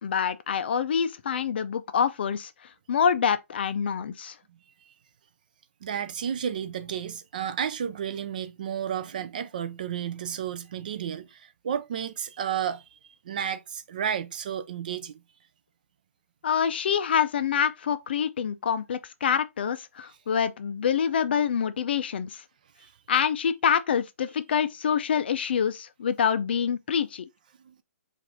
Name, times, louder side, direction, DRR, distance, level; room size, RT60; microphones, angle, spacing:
voice 1, 0.0-2.5 2.9-4.4 16.4-22.4 23.1-27.3, left 7 dB, 45° left, 0.4 m, -26 dB
voice 2, 5.8-12.8 13.3-15.2 22.8-22.9 27.6-27.8, right 8 dB, 35° right, 0.3 m, -32 dB
4.9 x 2.5 x 3.6 m
hypercardioid pair, 170°, 8 cm